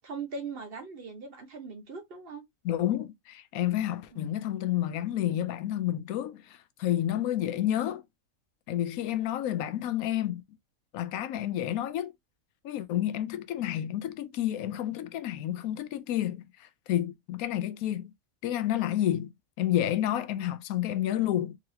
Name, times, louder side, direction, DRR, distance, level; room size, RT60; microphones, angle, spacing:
voice 1, 0.0-2.4 4.1-4.2, right 4 dB, 45° right, 1.0 m, -40 dB
voice 2, 2.6-8.0 8.7-10.4 10.9-12.1 12.6-18.1 18.4-19.3 19.6-21.6, left 12 dB, 90° left, 1.0 m, -30 dB
3.8 x 2.9 x 2.8 m
omnidirectional pair, 1.5 m